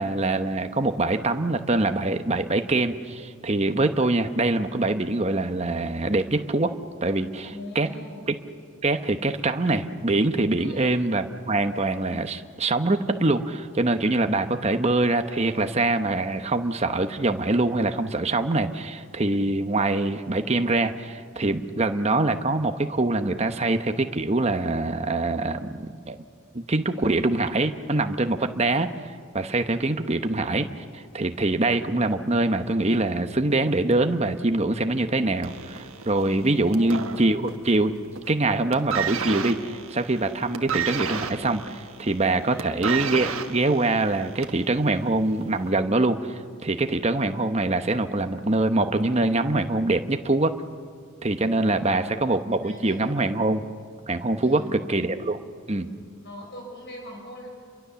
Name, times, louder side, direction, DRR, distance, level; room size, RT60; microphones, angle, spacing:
voice 1, 0.0-6.8 7.0-7.9 8.8-26.2 26.5-28.9 29.3-30.7 30.9-37.9 38.3-50.6 51.2-53.6 54.1-54.6 54.9-55.4 55.7-55.9, right 2 dB, 30° right, 8 dB, 1.0 m, -24 dB
voice 2, 7.5-8.2 10.6-11.0 36.6-37.3 42.4-42.8 51.6-52.1 52.6-53.0 54.4-54.8 56.2-57.5, left 1 dB, 50° left, 0 dB, 5.8 m, -41 dB
sound 1, 35.4-37.8 38.1-38.4 38.7-44.7 45.5-45.6, right 7 dB, 70° right, 1.4 m, -32 dB
29.0 x 23.0 x 7.0 m, 2.2 s
head